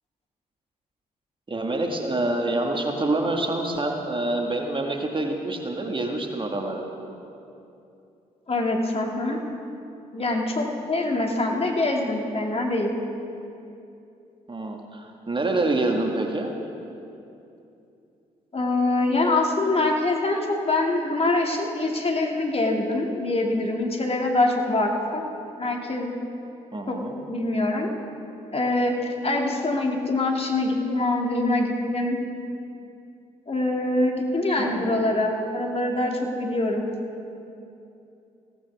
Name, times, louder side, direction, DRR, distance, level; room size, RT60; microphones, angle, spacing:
voice 1, 1.5-6.8 14.5-16.5 26.7-27.2 34.6-35.0, right 2 dB, 25° right, 2 dB, 1.9 m, -26 dB
voice 2, 8.5-9.4 10.1-12.9 18.5-25.2 25.6-26.2 26.9-27.9 28.5-32.2 33.5-36.9, left 2 dB, 30° left, 1 dB, 2.4 m, -24 dB
19.0 x 17.5 x 3.6 m, 2.7 s
figure-of-eight pair, 40°, 20 cm